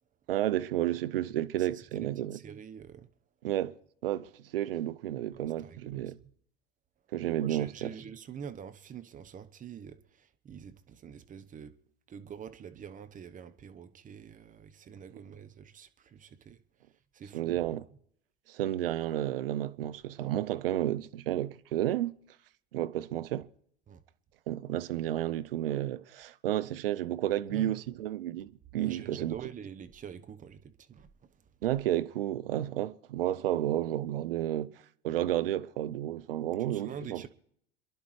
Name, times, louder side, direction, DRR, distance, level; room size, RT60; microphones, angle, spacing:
voice 1, 0.3-2.4 3.4-3.7 4.0-6.2 7.1-7.9 17.3-17.8 18.5-22.1 22.7-23.5 24.5-29.4 31.6-34.7 35.0-37.3, right 13 dB, 70° right, 0.7 m, -31 dB
voice 2, 1.6-3.1 5.3-6.2 7.4-11.7 12.1-16.6 17.1-17.7 23.9-24.0 27.5-27.8 28.8-31.1 36.7-37.3, right 7 dB, 25° right, 1.0 m, -46 dB
27.5 x 11.0 x 3.2 m
figure-of-eight pair, 80°, 29 cm